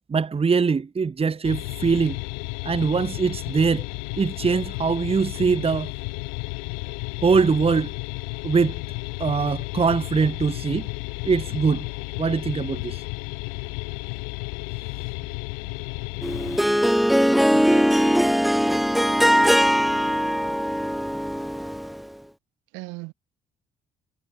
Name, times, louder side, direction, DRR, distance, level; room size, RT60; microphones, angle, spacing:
voice 1, 0.1-2.2 2.6-3.9 4.2-5.9 7.2-7.9 8.4-8.8 9.2-10.9 11.2-11.9 12.2-13.0, right 5 dB, 30° right, 1.1 m, -22 dB
sound 1, 1.4-16.6, left 40 dB or more, 80° left, 7.8 m, -33 dB
Harp, 16.2-22.0, equal, ahead, 1.5 m, -20 dB
voice 2, 17.5-18.4 22.7-23.1, right 26 dB, 75° right, 5.4 m, -39 dB
hypercardioid pair, 45°, 20 cm